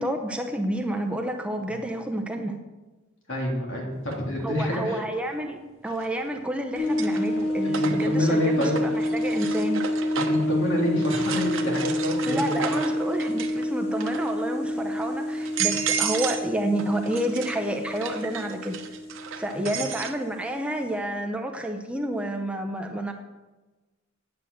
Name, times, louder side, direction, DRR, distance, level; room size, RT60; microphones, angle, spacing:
voice 1, 0.0-2.6 4.4-9.9 12.2-18.8 19.4-23.1, right 1 dB, 5° right, 3 dB, 0.7 m, -29 dB
voice 2, 3.3-5.0 7.8-8.8 10.3-12.6 19.5-19.7, left 1 dB, 65° left, -2 dB, 3.3 m, -27 dB
sound 1, 4.1-4.2 5.9-6.4 6.8-10.5 11.0-13.6 13.9-14.4 15.0-15.1 15.4-16.5 16.8-20.1, right 7 dB, 70° right, 1.0 m, -33 dB
sound 2, 6.7-20.9, left 1 dB, 35° left, 4.5 m, -29 dB
9.7 x 7.9 x 7.0 m, 1.2 s
head